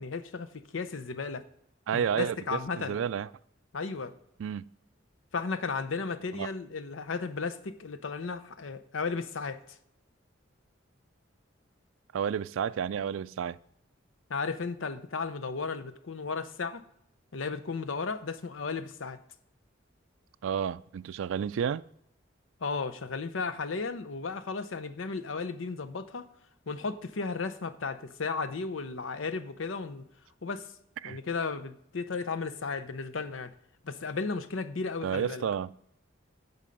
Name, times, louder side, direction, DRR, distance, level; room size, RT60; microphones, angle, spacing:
voice 1, 0.0-1.5 1.9-3.0 3.7-4.1 5.3-9.8 14.3-16.8 17.3-19.2 22.6-26.3 26.7-30.0 30.4-30.7 31.0-33.5 33.8-35.4, left 4 dB, 90° left, 0.7 m, -34 dB
voice 2, 1.9-3.3 4.4-4.6 6.3-6.5 12.1-13.6 20.4-21.8 31.0-31.2 35.0-35.7, right 8 dB, 90° right, 0.3 m, -31 dB
16.0 x 5.4 x 5.2 m
head